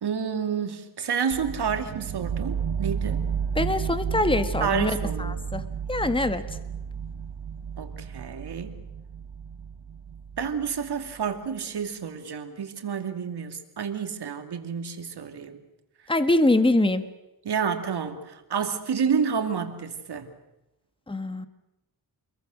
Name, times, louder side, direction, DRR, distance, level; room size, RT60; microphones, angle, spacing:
voice 1, 0.0-3.3 4.6-5.3 7.8-8.8 10.4-15.6 17.4-20.3, right 6 dB, 75° right, 6 dB, 2.7 m, -29 dB
sound 1, 1.3-11.1, right 7 dB, 90° right, 1.5 m, -32 dB
voice 2, 3.6-6.4 16.1-17.1 21.1-21.5, left 2 dB, 15° left, 10 dB, 1.7 m, -24 dB
28.5 x 22.0 x 6.5 m, 0.96 s
wide cardioid pair, 105°, 40 cm